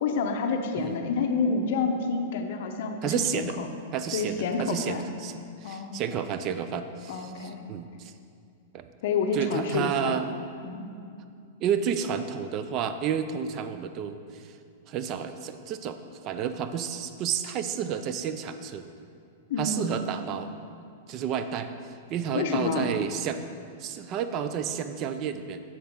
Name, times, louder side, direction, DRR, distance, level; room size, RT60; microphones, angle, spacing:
voice 1, 0.0-3.7 4.1-5.1 5.6-6.0 7.1-7.6 9.0-10.2 10.6-10.9 19.5-20.0 22.3-22.9, left 4 dB, 55° left, 5 dB, 0.7 m, -28 dB
voice 2, 3.0-3.6 3.9-8.1 8.7-8.9 9.3-10.4 11.6-14.5 14.9-16.0 16.2-18.9 19.6-20.5 21.1-21.7 22.1-23.4 23.8-25.6, right 8 dB, 30° right, 10 dB, 0.3 m, -31 dB
7.3 x 7.1 x 3.6 m, 2.4 s
supercardioid pair, 160°, 0 cm